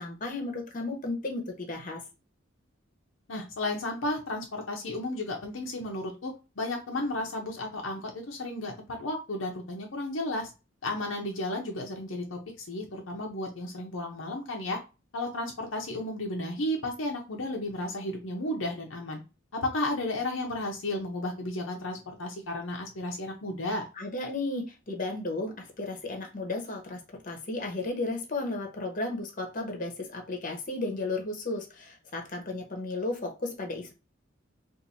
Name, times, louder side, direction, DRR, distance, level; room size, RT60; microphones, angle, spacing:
voice 1, 0.0-2.0 24.0-33.9, left 2 dB, 45° left, 2 dB, 0.9 m, -34 dB
voice 2, 3.3-10.5 10.8-14.8 15.1-19.2 19.5-23.8, left 1 dB, 70° left, 1 dB, 0.7 m, -33 dB
2.6 x 2.6 x 4.1 m, 0.29 s
head